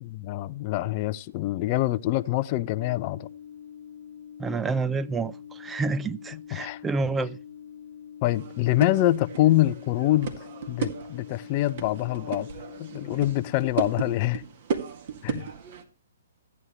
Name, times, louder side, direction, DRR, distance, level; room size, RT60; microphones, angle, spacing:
voice 1, 0.0-3.3 6.3-6.8 8.2-10.3 10.7-12.5 12.8-14.4 15.2-15.4, left 15 dB, 35° left, 0.5 m, -25 dB
sound 1, 2.8-13.6, left 9 dB, 80° left, 0.6 m, -45 dB
voice 2, 4.4-5.3 5.6-7.4, right 4 dB, 10° right, 0.5 m, -28 dB
sound 2, 8.2-15.8, right 7 dB, 50° right, 1.9 m, -36 dB
14.0 x 9.6 x 3.2 m
hypercardioid pair, 130°, 0 cm